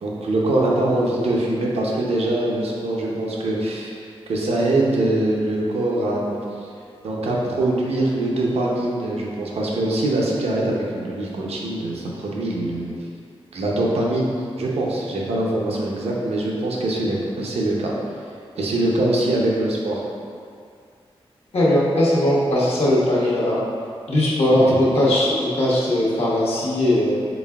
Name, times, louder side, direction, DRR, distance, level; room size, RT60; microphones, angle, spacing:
voice 1, 0.0-3.9 4.3-6.7 7.0-12.9 13.5-17.9 18.6-20.0 24.5-24.8, right 1 dB, 85° right, -3 dB, 0.6 m, -23 dB
voice 2, 21.5-23.6 24.1-27.2, left 1 dB, 80° left, -7 dB, 0.9 m, -19 dB
4.1 x 3.4 x 2.3 m, 2.3 s
wide cardioid pair, 95°, 10 cm